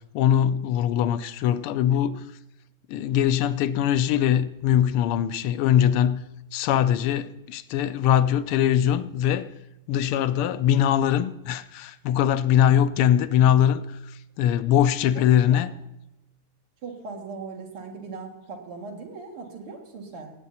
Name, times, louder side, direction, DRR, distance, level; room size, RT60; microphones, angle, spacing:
voice 1, 0.1-2.2 2.9-6.2 6.5-9.5 9.9-13.8 14.4-15.7, left 10 dB, 90° left, 1.6 m, -21 dB
voice 2, 15.1-15.7 16.8-20.3, right 4 dB, 85° right, 2.8 m, -39 dB
19.0 x 8.5 x 4.2 m
omnidirectional pair, 2.4 m